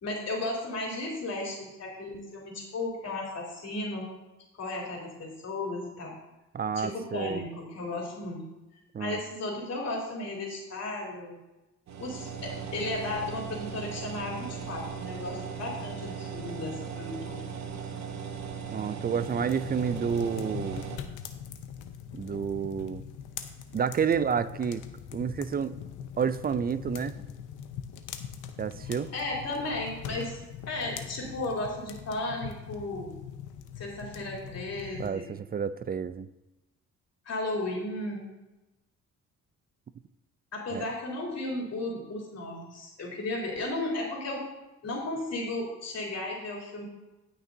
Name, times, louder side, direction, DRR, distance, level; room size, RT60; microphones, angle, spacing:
voice 1, 0.0-4.1 4.6-6.1 6.8-8.4 9.0-11.4 12.0-17.4 28.8-30.4 30.7-33.1 33.8-35.3 37.3-38.3 40.5-44.4 44.8-46.8, left 2 dB, 55° left, -2 dB, 3.4 m, -34 dB
voice 2, 6.5-7.5 8.9-9.2 18.7-20.8 22.1-23.0 23.7-24.8 25.1-25.8 26.2-27.2 28.6-29.1 35.0-36.3 40.7-40.9, right 7 dB, 30° right, 15 dB, 0.4 m, -30 dB
sound 1, 11.9-21.0, right 6 dB, 65° right, 1.2 m, -38 dB
sound 2, 19.2-35.1, left 8 dB, 85° left, 0.9 m, -42 dB
18.0 x 6.0 x 2.8 m, 1.0 s
cardioid pair, 90°, 30 cm